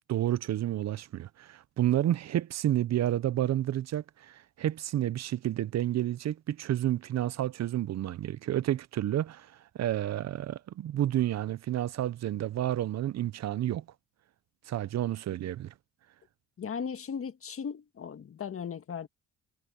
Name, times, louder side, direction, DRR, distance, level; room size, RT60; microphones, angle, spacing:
voice 1, 0.1-13.8 14.7-15.7, right 12 dB, 60° right, 0.7 m, -30 dB
voice 2, 16.6-19.1, left 7 dB, 45° left, 1.8 m, -37 dB
cardioid pair, 90°, 30 cm